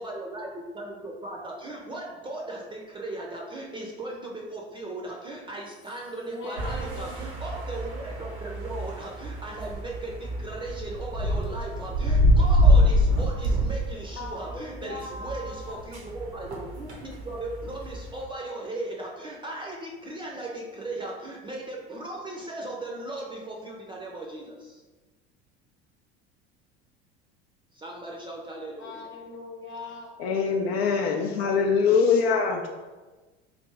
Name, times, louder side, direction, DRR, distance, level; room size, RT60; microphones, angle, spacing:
voice 1, 0.0-24.8 27.7-29.1, right 2 dB, 15° right, -2 dB, 0.5 m, -37 dB
voice 2, 6.1-7.2 14.2-15.8 28.8-30.2, left 2 dB, 35° left, 0 dB, 1.0 m, -40 dB
sound 1, 6.6-18.2, equal, 85° right, 0.8 m, -25 dB
voice 3, 30.2-32.7, left 5 dB, 70° left, 1 dB, 0.5 m, -23 dB
3.3 x 2.4 x 3.2 m, 1.2 s
hypercardioid pair, 70°, 32 cm